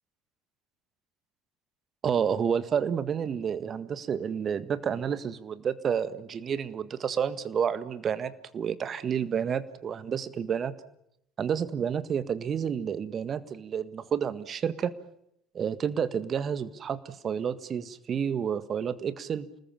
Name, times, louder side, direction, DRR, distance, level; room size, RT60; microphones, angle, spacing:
voice 1, 2.0-10.7 11.4-14.9 15.5-19.5, right 7 dB, 40° right, 13 dB, 1.7 m, -30 dB
28.5 x 20.0 x 7.4 m, 0.76 s
figure-of-eight pair, 65°, 0 cm